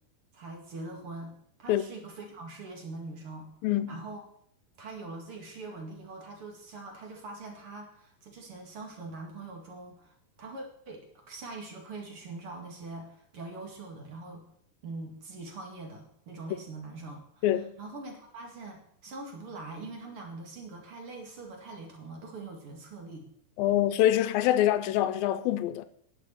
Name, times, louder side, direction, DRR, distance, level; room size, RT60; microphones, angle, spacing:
voice 1, 0.3-1.3 1.6-3.5 3.9-4.2 4.8-14.4 14.8-23.3, right 3 dB, 45° right, 2.5 m, -43 dB
voice 2, 3.6-4.0 17.4-17.7 23.6-25.9, left 12 dB, 80° left, 2.5 m, -25 dB
10.5 x 7.1 x 8.5 m
omnidirectional pair, 4.2 m